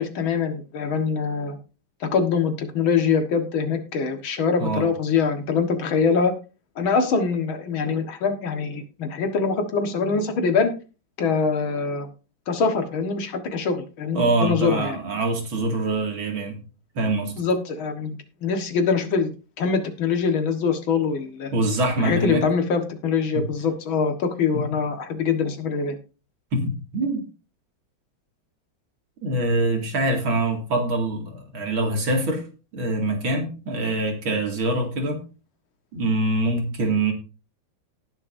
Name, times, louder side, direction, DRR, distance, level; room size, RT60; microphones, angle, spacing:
voice 1, 0.0-1.6 2.0-6.3 6.8-10.7 11.2-12.1 12.5-15.0 17.4-21.5 22.0-26.0, left 5 dB, 85° left, 2.3 m, -24 dB
voice 2, 14.1-16.6 17.0-17.3 21.5-22.5 23.3-23.5 24.5-24.7 26.5-27.2 29.2-32.4 32.7-35.2 35.9-37.1, right 2 dB, 85° right, 3.1 m, -24 dB
18.5 x 6.7 x 2.6 m
omnidirectional pair, 2.2 m